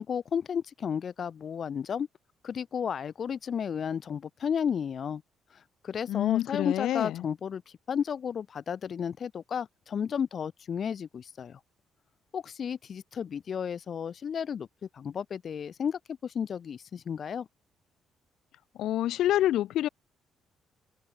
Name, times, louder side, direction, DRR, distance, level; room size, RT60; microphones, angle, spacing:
voice 1, 0.0-2.1 2.4-5.2 5.8-7.6 7.9-11.6 12.3-17.5, left 7 dB, 55° left, 0.9 m, -33 dB
voice 2, 6.1-7.3 18.8-19.9, left 13 dB, 80° left, 2.3 m, -27 dB
open air
cardioid pair, 90°, 0 cm